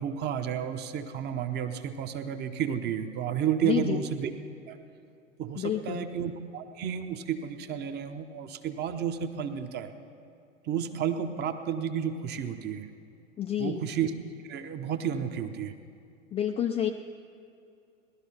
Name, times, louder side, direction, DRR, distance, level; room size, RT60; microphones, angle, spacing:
voice 1, 0.0-4.3 4.7-4.8 5.4-9.9 10.6-12.9 13.6-14.1 14.5-15.7, right 8 dB, 25° right, 8 dB, 0.9 m, -31 dB
voice 2, 3.6-4.0 5.6-6.1 13.4-13.8 16.3-16.9, left 10 dB, 15° left, 3 dB, 0.4 m, -29 dB
18.0 x 12.0 x 5.7 m, 2.6 s
figure-of-eight pair, 95°, 38 cm